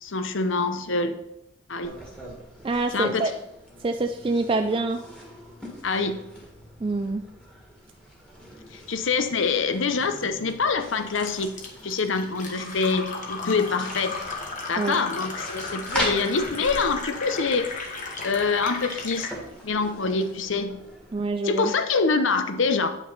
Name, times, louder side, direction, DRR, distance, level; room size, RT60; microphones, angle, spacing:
voice 1, 0.0-1.2 1.7-1.9 2.9-3.3 5.8-6.2 8.7-14.2 14.7-17.7 18.2-19.3 19.6-20.9 21.4-22.9, left 4 dB, 70° left, 9 dB, 0.7 m, -25 dB
sound 1, 1.8-21.3, equal, 5° left, 1.7 m, -40 dB
voice 2, 2.6-3.3 3.8-5.0 6.8-7.2 14.8-15.0 21.1-21.7, right 3 dB, 25° right, 6 dB, 0.3 m, -26 dB
Fill (with liquid), 11.3-19.4, left 3 dB, 40° left, 1.2 m, -35 dB
9.0 x 5.9 x 4.0 m, 0.82 s
head